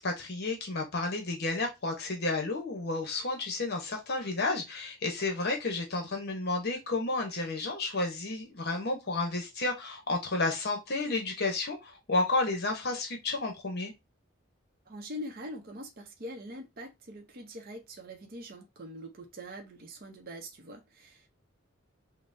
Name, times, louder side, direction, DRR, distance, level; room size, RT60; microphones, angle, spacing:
voice 1, 0.0-13.9, left 3 dB, 50° left, 0.8 m, -31 dB
voice 2, 14.9-21.3, equal, 45° right, 0.6 m, -43 dB
5.4 x 2.0 x 2.5 m
head